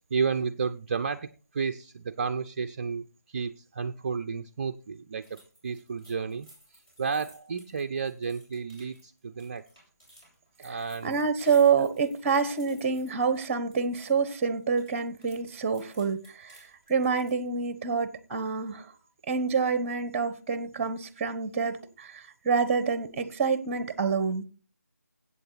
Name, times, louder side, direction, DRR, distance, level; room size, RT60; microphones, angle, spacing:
voice 1, 0.1-9.6 10.6-11.2, right 5 dB, 35° right, 0.6 m, -32 dB
sound 1, 5.2-14.3 14.6-17.5, equal, 15° left, 6.9 m, -57 dB
voice 2, 11.0-16.6 16.9-18.9 19.3-24.4, right 5 dB, 15° right, 1.2 m, -27 dB
14.5 x 8.4 x 4.1 m
figure-of-eight pair, 160°, 9 cm